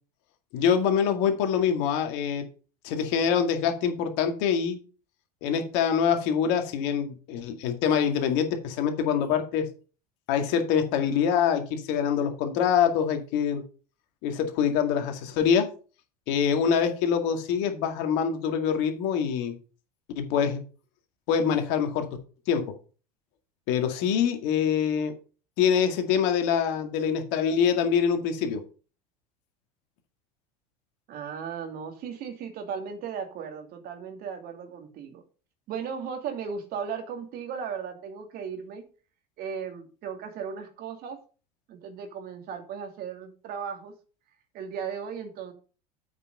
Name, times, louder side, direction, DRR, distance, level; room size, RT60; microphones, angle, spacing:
voice 1, 0.5-2.4 2.8-4.8 5.4-9.7 10.3-13.6 14.2-15.7 16.3-19.5 20.2-20.6 21.3-22.1 22.5-22.6 23.7-25.1 25.6-28.6, left 7 dB, 60° left, 6 dB, 2.1 m, -25 dB
voice 2, 31.1-35.2 35.7-38.8 39.4-41.2 41.7-43.9 44.5-45.5, right 6 dB, 50° right, 5 dB, 2.5 m, -36 dB
8.0 x 5.8 x 5.5 m, 0.36 s
hypercardioid pair, 75°, 20 cm